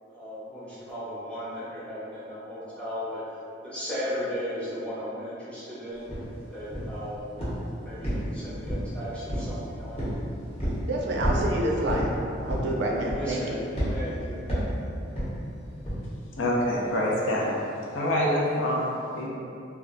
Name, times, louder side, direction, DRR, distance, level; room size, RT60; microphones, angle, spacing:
voice 1, 0.1-3.2 3.6-6.1 6.5-7.3 7.8-10.1 13.1-13.6 13.9-14.8, equal, 5° left, -10 dB, 0.7 m, -36 dB
sound 1, 6.1-6.2 6.7-7.0 7.4-7.7 8.0-8.9 9.3-9.6 10.0-10.2 10.6-10.8 11.2-11.5 11.8-12.1 12.5-12.7 13.1-13.4 13.8-14.0 14.5-14.7 15.1-15.3 15.8-16.0, equal, 30° left, 0.9 m, -29 dB
voice 2, 10.8-12.1 12.4-13.4, right 1 dB, 60° right, -2 dB, 0.4 m, -28 dB
voice 3, 16.4-17.6 17.9-19.3, left 1 dB, 85° left, -4 dB, 0.5 m, -26 dB
2.3 x 2.1 x 3.8 m, 2.6 s
head